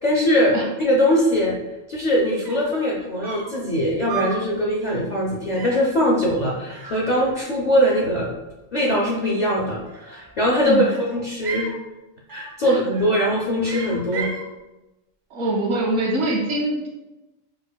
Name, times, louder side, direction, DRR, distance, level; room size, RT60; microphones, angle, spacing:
voice 1, 0.0-1.6 1.9-8.3 8.7-10.9 11.1-11.7 12.3-14.3, equal, 60° left, -4 dB, 0.4 m, -21 dB
sound 1, 2.2-2.3 2.5-2.8 3.2-3.6 4.1-4.5 4.8-5.1 5.6-5.9 6.7-7.6 7.8-8.5 9.8-10.4 10.8-11.8 12.3-12.6 12.9-13.3 13.6-14.5, right 5 dB, 55° right, 0.5 m, -35 dB
voice 2, 15.3-16.9, right 2 dB, 90° right, -3 dB, 1.3 m, -23 dB
4.8 x 2.2 x 2.2 m, 1.0 s
omnidirectional pair, 1.3 m